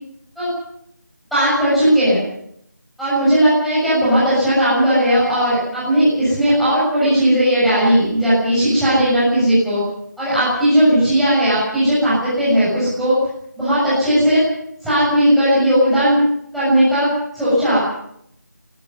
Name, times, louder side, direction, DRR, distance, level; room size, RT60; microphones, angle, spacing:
voice 1, 1.3-2.2 3.0-9.8 10.2-13.2 13.6-14.4 14.8-16.2 16.5-17.8, equal, ahead, -12 dB, 7.0 m, -16 dB
27.5 x 20.0 x 5.4 m, 0.72 s
figure-of-eight pair, 175°, 10 cm